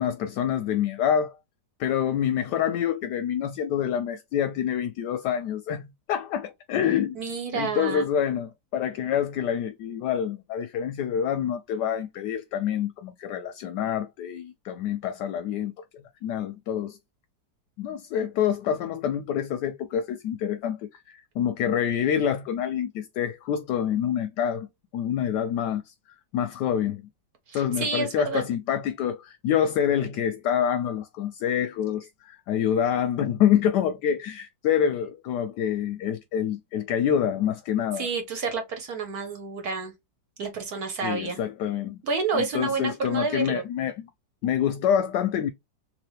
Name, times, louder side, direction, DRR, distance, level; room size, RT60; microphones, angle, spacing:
voice 1, 0.0-1.4 1.8-7.2 7.5-17.0 17.8-24.7 24.9-25.9 26.3-27.0 27.5-38.1 41.0-42.0 42.3-44.1 44.4-45.5, left 9 dB, 75° left, 1.1 m, -27 dB
voice 2, 7.1-8.1 27.5-28.4 38.0-39.9 40.4-41.4 42.0-43.6, right 4 dB, 60° right, 1.3 m, -29 dB
3.3 x 2.9 x 3.2 m
omnidirectional pair, 2.0 m